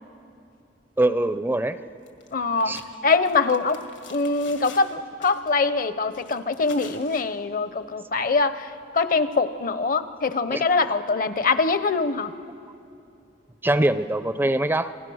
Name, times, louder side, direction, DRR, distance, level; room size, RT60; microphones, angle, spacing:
voice 1, 1.0-1.8 2.6-2.8 10.5-10.6 13.6-14.9, right 1 dB, 10° right, 12 dB, 0.4 m, -23 dB
sound 1, 2.1-2.3 2.6-5.0 5.2-5.6 6.1-7.3, left 6 dB, 80° left, 2.1 m, -46 dB
voice 2, 2.3-2.8 3.0-3.8 4.1-12.3, left 4 dB, 50° left, 12 dB, 0.8 m, -23 dB
28.0 x 21.0 x 6.4 m, 2.6 s
head